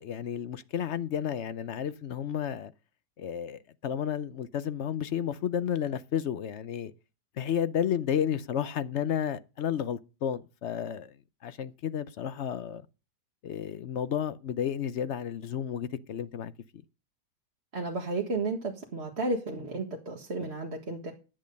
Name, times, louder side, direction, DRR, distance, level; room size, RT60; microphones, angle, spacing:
voice 1, 0.0-2.7 3.2-6.9 7.4-11.1 11.4-12.8 13.4-16.5, left 9 dB, 60° left, 0.8 m, -32 dB
voice 2, 17.7-21.1, right 2 dB, 40° right, 1.8 m, -33 dB
10.5 x 8.8 x 5.2 m
omnidirectional pair, 1.8 m